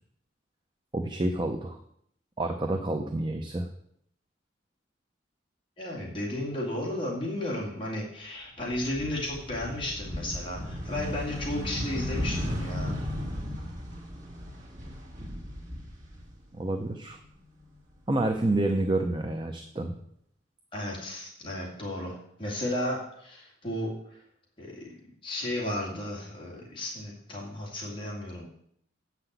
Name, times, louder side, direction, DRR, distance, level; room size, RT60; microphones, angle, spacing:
voice 1, 0.9-1.8 2.4-3.7 16.5-17.2 18.1-20.0, right 2 dB, 25° right, 4 dB, 0.7 m, -28 dB
voice 2, 5.8-13.0 20.7-23.9 24.6-24.8 25.2-28.4, left 1 dB, 30° left, -3 dB, 2.4 m, -34 dB
sound 1, 8.6-16.7 17.1-18.2, equal, 40° right, 2.3 m, -35 dB
8.2 x 5.9 x 8.0 m, 0.69 s
head